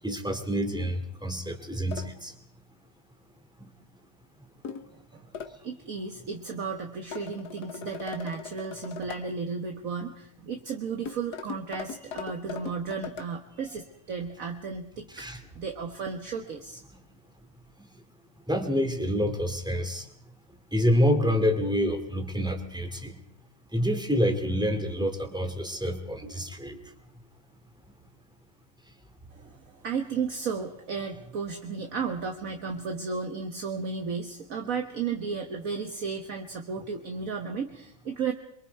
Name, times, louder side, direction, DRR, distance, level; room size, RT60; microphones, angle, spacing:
voice 1, 0.0-2.3 15.1-15.4 18.5-20.1 20.7-23.2 23.7-26.8, equal, 5° right, 6 dB, 2.3 m, -27 dB
sound 1, 1.9-2.1 4.6-4.9 5.3-5.6 7.1-9.2 11.1-13.3, left 6 dB, 85° left, 1.9 m, -39 dB
voice 2, 5.6-15.1 15.6-16.8 29.3-38.3, right 5 dB, 60° right, 4 dB, 1.7 m, -34 dB
28.0 x 23.0 x 4.6 m, 0.69 s
omnidirectional pair, 1.7 m